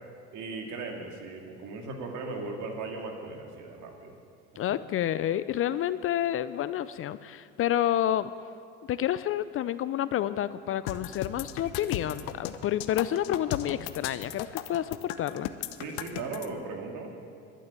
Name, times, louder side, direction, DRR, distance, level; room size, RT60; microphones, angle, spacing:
voice 1, 0.3-4.2 4.5-4.6 15.8-17.1, right 3 dB, 55° right, 2 dB, 2.5 m, -37 dB
voice 2, 4.6-8.3 8.9-15.5, left 11 dB, 40° left, 15 dB, 0.5 m, -29 dB
sound 1, 10.9-16.5, left 12 dB, 70° left, 0.8 m, -36 dB
12.0 x 7.6 x 9.6 m, 2.4 s
hypercardioid pair, 80°, 35 cm